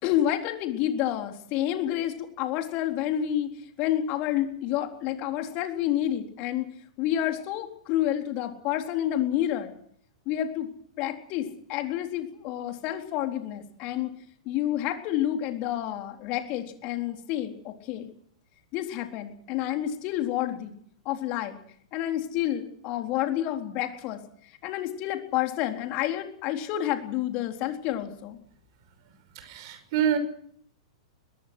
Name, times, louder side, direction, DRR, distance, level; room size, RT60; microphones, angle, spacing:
voice 1, 0.0-6.7 7.0-9.7 10.3-10.7 11.0-14.2 14.5-18.1 18.7-20.7 21.1-21.6 21.9-24.2 24.5-28.4, left 12 dB, 40° left, 5 dB, 4.0 m, -29 dB
voice 2, 29.3-30.2, right 9 dB, 50° right, 9 dB, 6.1 m, -26 dB
24.0 x 20.5 x 6.3 m, 0.64 s
figure-of-eight pair, 105°, 3 cm